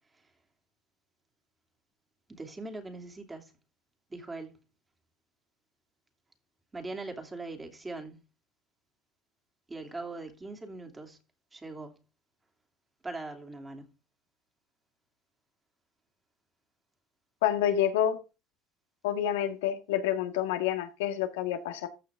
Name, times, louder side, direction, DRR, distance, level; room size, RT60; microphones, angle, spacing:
voice 1, 2.3-3.5 4.1-4.6 6.7-8.2 9.7-11.2 11.5-12.0 13.0-13.9, right 2 dB, 15° right, 2.9 m, -41 dB
voice 2, 17.4-18.2 19.0-21.9, left 10 dB, 85° left, 1.7 m, -28 dB
14.5 x 5.7 x 3.6 m
supercardioid pair, 95°, 0 cm